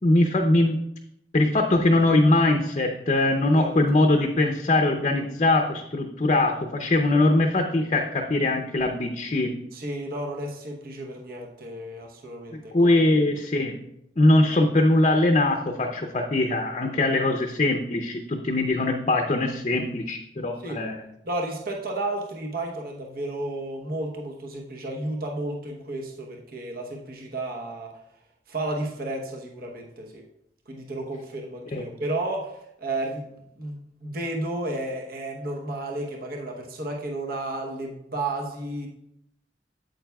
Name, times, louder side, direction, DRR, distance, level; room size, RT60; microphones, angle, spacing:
voice 1, 0.0-0.8 1.3-9.5 12.5-13.7 14.2-21.0 31.7-31.8, left 2 dB, 35° left, 3 dB, 0.6 m, -22 dB
voice 2, 9.7-13.2 20.6-20.8 21.2-27.9 28.5-30.2 30.7-38.9, right 2 dB, 55° right, 0 dB, 0.9 m, -32 dB
8.8 x 7.9 x 2.3 m, 0.79 s
head